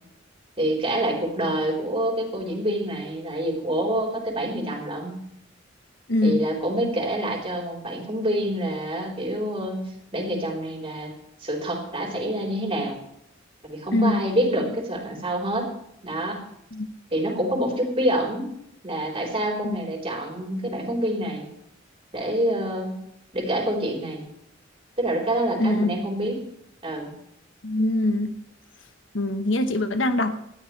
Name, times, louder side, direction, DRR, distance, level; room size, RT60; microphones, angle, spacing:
voice 1, 0.6-5.2 6.2-11.1 11.4-13.0 13.6-15.7 16.0-16.4 17.1-18.5 18.8-21.5 22.1-23.0 23.3-24.2 25.0-26.4 26.8-27.1, right 1 dB, 30° right, -1 dB, 4.0 m, -27 dB
voice 2, 6.1-6.4 13.9-14.2 16.7-16.9 19.6-19.8 25.6-25.9 27.6-28.3 29.1-30.4, left 1 dB, 75° left, 8 dB, 1.2 m, -23 dB
19.5 x 13.0 x 3.3 m, 0.76 s
head